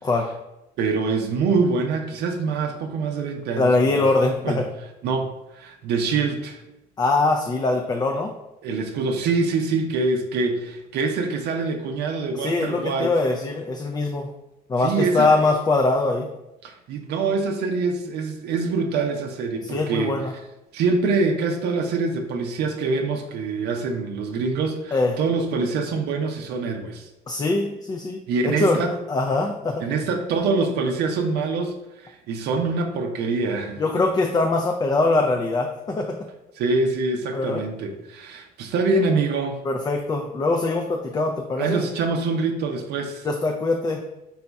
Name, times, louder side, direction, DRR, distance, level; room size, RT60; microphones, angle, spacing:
voice 1, 0.0-0.4 3.6-4.7 7.0-8.4 12.3-14.3 14.7-16.3 19.6-20.3 24.9-25.2 27.3-29.8 33.8-36.3 37.3-37.6 39.6-41.8 43.2-44.0, left 3 dB, 25° left, 3 dB, 0.3 m, -22 dB
voice 2, 0.8-4.1 4.4-4.6 5.0-6.6 8.6-13.1 14.8-15.5 16.6-20.1 20.7-27.1 28.3-28.9 29.8-33.8 36.6-39.6 41.6-43.3, right 4 dB, 75° right, 3 dB, 0.5 m, -25 dB
4.1 x 2.3 x 4.0 m, 0.94 s
cardioid pair, 110°, 17 cm